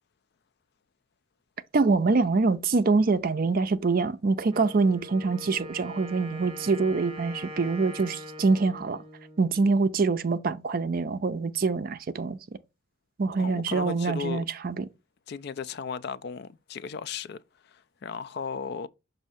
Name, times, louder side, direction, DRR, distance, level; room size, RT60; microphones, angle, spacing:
voice 1, 1.7-9.0 9.4-12.4 13.2-14.9, right 4 dB, 45° right, 0.5 m, -25 dB
Wind instrument woodwind instrument, 4.5-10.2, left 1 dB, 30° right, 1.1 m, -43 dB
voice 2, 13.4-14.4 15.3-17.4 17.6-18.9, left 6 dB, 55° left, 0.4 m, -35 dB
6.3 x 2.7 x 5.6 m
head